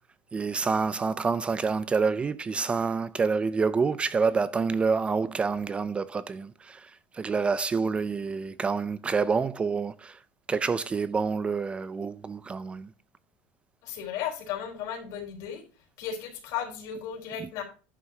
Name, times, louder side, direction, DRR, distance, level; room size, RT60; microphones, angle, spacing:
voice 1, 0.3-10.2 10.5-12.9, right 5 dB, 15° right, 0.4 m, -27 dB
voice 2, 13.8-15.6 16.0-17.6, left 8 dB, 60° left, 4.0 m, -35 dB
11.0 x 9.5 x 2.8 m
cardioid pair, 145°, 6 cm